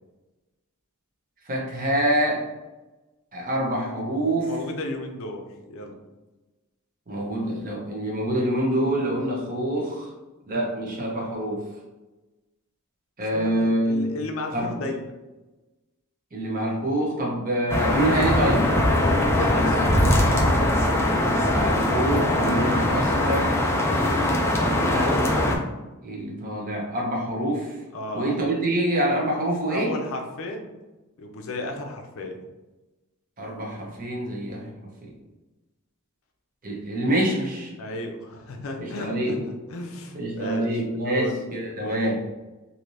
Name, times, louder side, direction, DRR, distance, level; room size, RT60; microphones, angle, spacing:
voice 1, 1.5-2.4 3.3-4.5 7.1-10.1 10.5-11.6 13.2-14.1 14.5-14.7 16.3-18.7 21.4-23.6 24.6-25.2 26.0-27.8 28.1-30.0 33.4-34.6 35.0-35.1 36.6-37.7 38.8-39.4 40.1-42.2, right 1 dB, 40° right, -2 dB, 0.8 m, -26 dB
voice 2, 4.4-5.9 13.3-15.1 19.1-19.9 27.9-28.3 29.7-30.7 31.2-32.3 37.8-39.4 39.7-40.7 41.0-41.4 41.8-42.1, left 1 dB, 65° left, 3 dB, 0.5 m, -33 dB
sound 1, 17.7-25.6, left 1 dB, 10° left, 0.3 m, -21 dB
3.2 x 2.7 x 2.6 m, 1.1 s
head